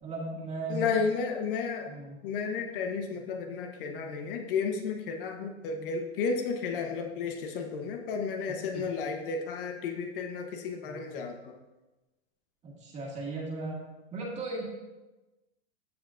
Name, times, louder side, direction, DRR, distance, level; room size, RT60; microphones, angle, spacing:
voice 1, 0.0-1.0 1.9-2.2 8.7-8.8 10.9-11.1 12.6-13.8 14.1-14.6, right 2 dB, 20° right, -2 dB, 2.0 m, -36 dB
voice 2, 0.7-1.9 2.2-11.6, left 5 dB, 50° left, 4 dB, 1.0 m, -32 dB
14.0 x 5.6 x 2.5 m, 1.1 s
supercardioid pair, 145°, 33 cm